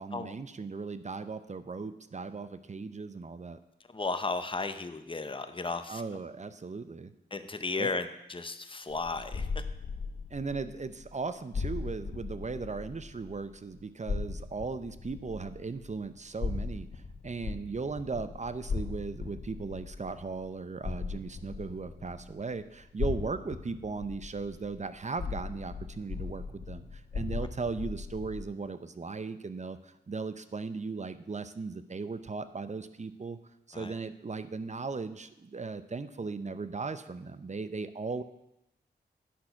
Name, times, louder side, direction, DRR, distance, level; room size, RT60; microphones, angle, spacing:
voice 1, 0.0-3.6 5.9-7.1 7.8-7.9 10.3-33.4 33.7-38.2, right 4 dB, 40° right, 12 dB, 0.7 m, -37 dB
voice 2, 3.9-6.0 7.3-9.5 33.7-33.9, left 3 dB, 25° left, 9 dB, 0.8 m, -34 dB
sound 1, 8.9-13.6 14.0-22.5 23.0-28.4, left 4 dB, 75° left, 1.1 m, -38 dB
10.5 x 6.2 x 5.8 m, 0.88 s
cardioid pair, 55°, 19 cm